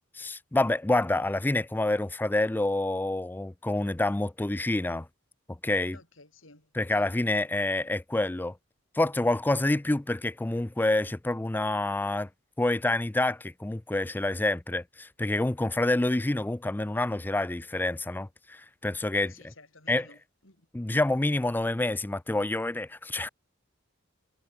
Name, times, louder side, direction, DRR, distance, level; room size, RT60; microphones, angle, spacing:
voice 1, 0.2-5.1 5.5-6.0 6.7-8.6 8.9-12.3 12.6-19.3 19.9-20.1 20.7-23.3, left 2 dB, 10° left, 0.4 m, -27 dB
voice 2, 5.9-6.7 7.0-7.1 19.1-20.7, left 3 dB, 70° left, 7.1 m, -53 dB
head